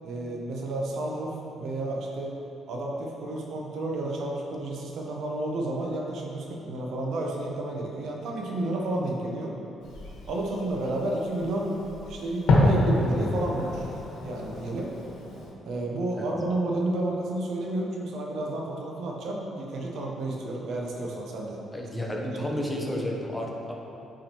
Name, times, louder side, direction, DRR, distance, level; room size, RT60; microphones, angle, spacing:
voice 1, 0.0-2.4 2.7-9.5 10.3-11.8 12.0-13.9 14.2-14.9 15.6-21.6 21.9-22.6, right 1 dB, 75° right, -1 dB, 1.0 m, -31 dB
Fireworks, 9.8-15.5, left 1 dB, 80° left, 1.3 m, -28 dB
voice 2, 21.7-23.7, left 1 dB, 5° left, -1 dB, 1.0 m, -32 dB
8.7 x 4.9 x 3.0 m, 2.9 s
cardioid pair, 90°, 0 cm